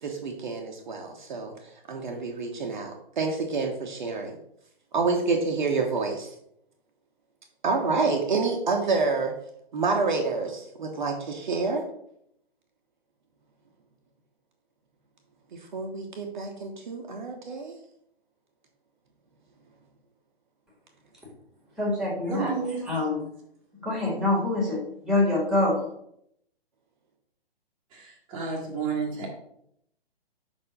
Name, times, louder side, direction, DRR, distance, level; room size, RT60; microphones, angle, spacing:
voice 1, 0.0-1.5 1.9-4.4 4.9-6.3 7.6-9.3 9.7-11.8 15.5-17.7, right 4 dB, 50° right, 2 dB, 1.1 m, -28 dB
voice 2, 21.8-22.5 22.8-23.3 23.8-24.8 25.0-25.8, left 2 dB, ahead, -3 dB, 2.0 m, -25 dB
voice 3, 22.3-22.8 27.9-29.3, right 5 dB, 15° right, -6 dB, 1.4 m, -31 dB
5.4 x 4.5 x 5.4 m, 0.73 s
figure-of-eight pair, 125°, 30 cm